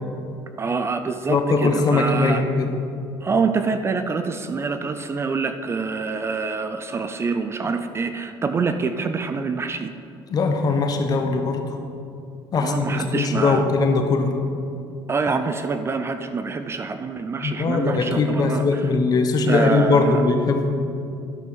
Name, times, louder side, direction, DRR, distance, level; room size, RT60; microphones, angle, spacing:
voice 1, 0.6-2.4 3.2-9.9 12.5-13.7 15.1-18.8 19.4-20.2, right 4 dB, 25° right, 9 dB, 0.4 m, -26 dB
voice 2, 1.3-2.7 10.3-11.6 12.5-14.3 17.4-20.8, left 3 dB, 40° left, 5 dB, 1.1 m, -20 dB
12.0 x 5.4 x 6.1 m, 2.5 s
cardioid pair, 115°, 10 cm